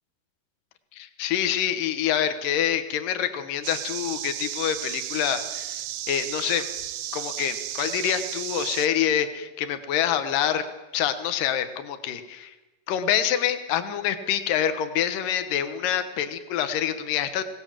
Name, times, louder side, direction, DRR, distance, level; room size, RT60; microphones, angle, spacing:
voice 1, 0.9-5.8 6.1-6.6 7.1-10.7 10.9-12.2 12.9-17.4, left 10 dB, 70° left, 9 dB, 2.9 m, -26 dB
sound 1, 3.6-8.9, right 12 dB, 85° right, 2.7 m, -34 dB
24.5 x 18.0 x 7.5 m, 1.1 s
omnidirectional pair, 4.1 m